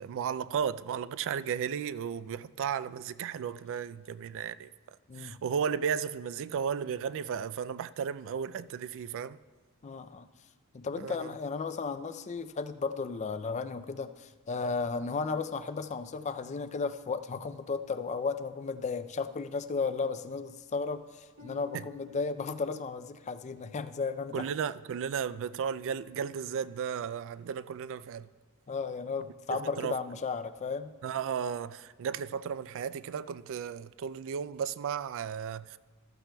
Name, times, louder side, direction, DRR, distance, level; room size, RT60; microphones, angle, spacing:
voice 1, 0.0-4.7 5.2-9.4 11.0-11.3 21.7-21.8 24.3-28.3 29.8-30.0 31.0-35.8, right 7 dB, 60° right, 0.3 m, -34 dB
voice 2, 5.1-5.4 9.8-10.3 10.7-24.5 28.7-30.9, left 4 dB, 30° left, 0.4 m, -34 dB
Harp, 21.4-25.1 25.7-26.1 26.7-26.8, left 7 dB, 85° right, 2.6 m, -55 dB
14.5 x 13.0 x 2.2 m
head